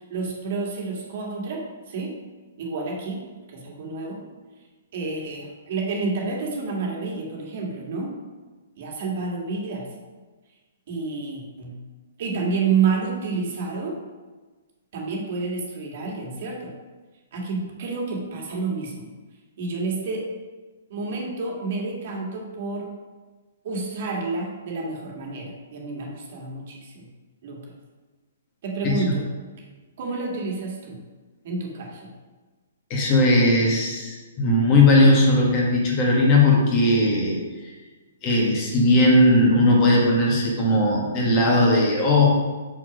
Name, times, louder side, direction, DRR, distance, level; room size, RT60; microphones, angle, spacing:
voice 1, 0.1-2.1 2.6-4.3 4.9-8.1 8.8-9.9 10.9-11.8 12.2-14.0 14.9-16.7 17.3-19.1 19.6-20.3 20.9-22.9 23.6-27.1 27.4-27.7 28.6-29.3 30.0-31.0 31.4-32.1, right 4 dB, 50° right, -1 dB, 1.8 m, -29 dB
voice 2, 32.9-37.3 37.6-37.7 38.2-42.3, left 1 dB, 30° left, -2 dB, 1.8 m, -18 dB
6.2 x 5.9 x 5.1 m, 1.3 s
hypercardioid pair, 160°, 0 cm